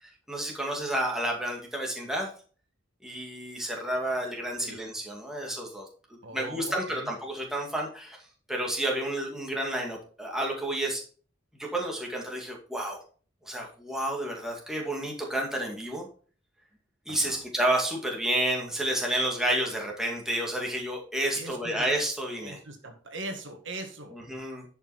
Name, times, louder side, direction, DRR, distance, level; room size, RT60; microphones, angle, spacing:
voice 1, 0.0-2.3 3.0-5.9 6.3-8.2 8.5-11.0 11.6-13.0 13.5-16.1 17.1-22.6 24.1-24.7, right 1 dB, 5° right, -1 dB, 2.2 m, -30 dB
voice 2, 6.2-7.1 17.1-17.4 21.4-21.8 22.4-24.2, right 2 dB, 65° right, 4 dB, 1.8 m, -40 dB
10.5 x 5.8 x 4.2 m, 0.41 s
head